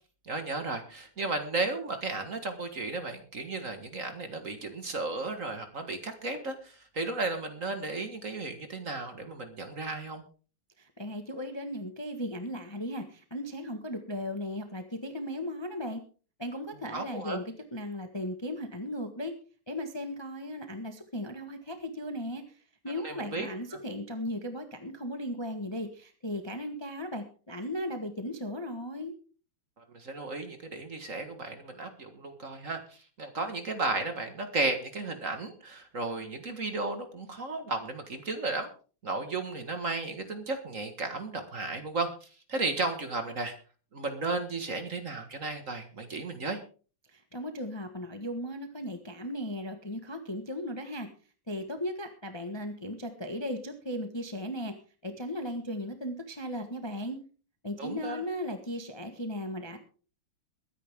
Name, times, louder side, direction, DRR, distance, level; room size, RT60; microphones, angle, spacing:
voice 1, 0.2-10.2 16.9-17.4 23.0-23.5 29.9-38.7 39.0-43.5 43.9-46.6 57.8-58.2, right 3 dB, 40° right, 7 dB, 1.8 m, -34 dB
voice 2, 10.8-16.0 16.4-19.3 19.7-22.4 22.8-29.1 47.1-51.1 51.5-54.7 55.0-57.2 57.6-59.8, left 1 dB, 15° left, 6 dB, 1.1 m, -36 dB
22.0 x 9.9 x 3.6 m, 0.38 s
omnidirectional pair, 2.4 m